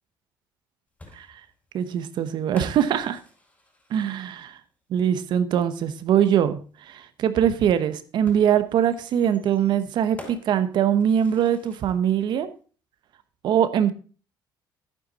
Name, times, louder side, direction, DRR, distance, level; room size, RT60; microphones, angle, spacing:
sound 1, 1.0-4.6 6.1-6.2 8.3-12.2, left 2 dB, 20° left, 5.6 m, -48 dB
voice 1, 1.7-3.2 3.9-4.5 4.9-6.6 6.9-12.5 13.4-13.9, right 9 dB, 65° right, 12 dB, 1.0 m, -22 dB
11.0 x 9.4 x 4.1 m, 0.37 s
cardioid pair, 115°, 8 cm